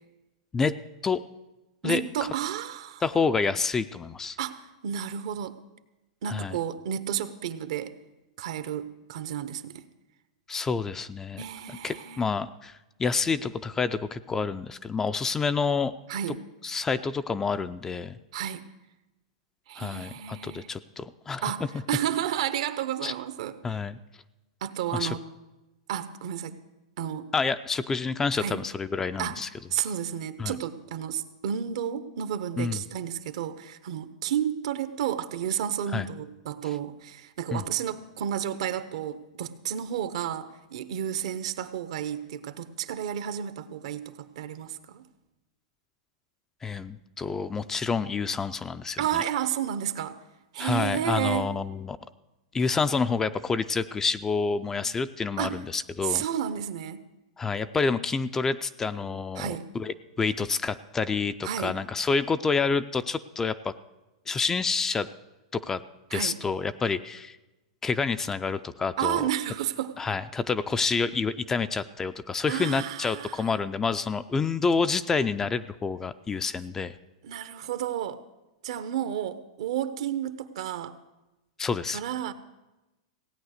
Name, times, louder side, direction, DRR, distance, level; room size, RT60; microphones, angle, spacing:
voice 1, 1.8-3.0 4.4-5.6 6.2-7.9 8.4-9.9 11.4-12.2 16.1-16.4 18.3-18.6 19.7-20.7 21.4-23.8 24.6-25.2 25.9-26.6 27.0-27.3 28.4-28.6 29.2-29.4 29.7-45.1 49.0-50.2 50.5-51.5 55.4-55.6 56.0-57.0 59.4-59.7 61.4-61.8 66.1-66.4 69.0-70.0 72.5-73.6 77.2-78.2 78.6-81.0 81.9-82.3, right 10 dB, 65° right, 12 dB, 0.9 m, -31 dB
voice 2, 3.0-4.4 6.3-6.5 10.5-15.9 16.6-18.2 19.8-21.5 23.0-23.1 23.6-24.0 24.9-25.1 27.3-29.5 30.4-30.6 32.6-32.8 35.9-36.1 37.5-37.6 46.6-49.2 50.6-52.0 52.5-56.2 57.4-63.7 64.3-65.1 65.5-65.8 66.1-67.4 67.8-69.2 70.0-76.9 81.6-82.0, left 4 dB, 15° left, 12 dB, 0.4 m, -28 dB
16.5 x 8.8 x 6.5 m, 1.0 s
supercardioid pair, 145°, 3 cm